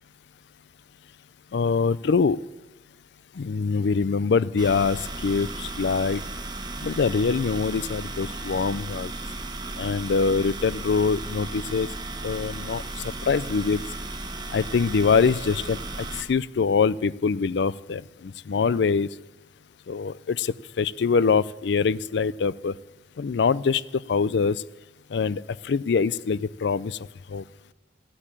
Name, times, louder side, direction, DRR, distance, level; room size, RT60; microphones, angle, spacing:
voice 1, 1.5-2.4 3.4-6.2 6.8-9.1 9.8-11.9 12.2-13.8 14.5-19.1 19.9-22.7 23.2-23.8 24.1-24.6 25.1-27.0 27.3-27.4, left 5 dB, 70° left, 19 dB, 0.4 m, -24 dB
sound 1, 4.6-16.2, right 2 dB, 25° right, 1.2 m, -35 dB
14.5 x 8.5 x 8.9 m, 1.1 s
head